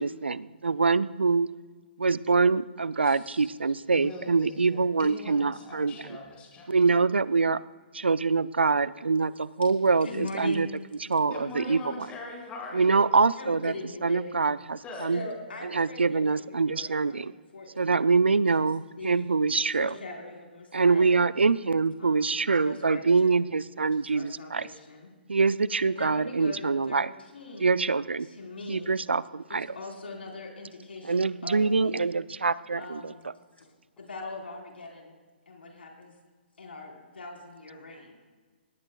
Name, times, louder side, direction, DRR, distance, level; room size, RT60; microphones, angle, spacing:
voice 1, 0.0-1.5 2.0-6.0 6.7-7.6 7.9-10.7 11.1-11.8 12.7-13.7 14.0-15.2 15.7-17.3 17.8-19.9 20.7-24.7 25.3-27.1 27.6-28.3 28.7-29.7 31.0-33.1, right 4 dB, 90° right, 18 dB, 0.5 m, -24 dB
voice 2, 3.0-6.7 11.3-13.1 14.8-15.1, left 3 dB, 20° left, -1 dB, 4.8 m, -42 dB
voice 3, 10.0-10.7 13.4-14.4 15.1-18.1 18.6-18.7 19.0-19.3 19.8-21.2 22.0-22.4 22.6-23.4 23.9-25.1 25.8-27.8 28.2-28.9 29.5-32.1 32.8-33.3 33.6-33.7 34.0-35.1 35.5-36.1 36.6-38.1, left 3 dB, 80° left, 0 dB, 4.2 m, -41 dB
21.0 x 18.5 x 2.3 m, 1.4 s
hypercardioid pair, 135°, 6 cm